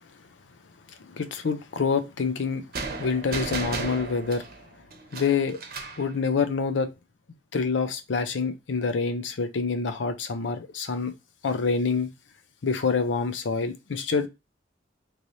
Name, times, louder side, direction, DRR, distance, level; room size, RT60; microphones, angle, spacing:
voice 1, 1.0-2.6 3.0-4.5 5.1-5.6 6.0-6.9 7.5-11.1 11.4-12.1 12.6-14.3, left 5 dB, 90° left, 0.5 m, -26 dB
sound 1, 2.7-6.1, right 4 dB, 55° right, 0.7 m, -34 dB
3.1 x 3.0 x 2.6 m
head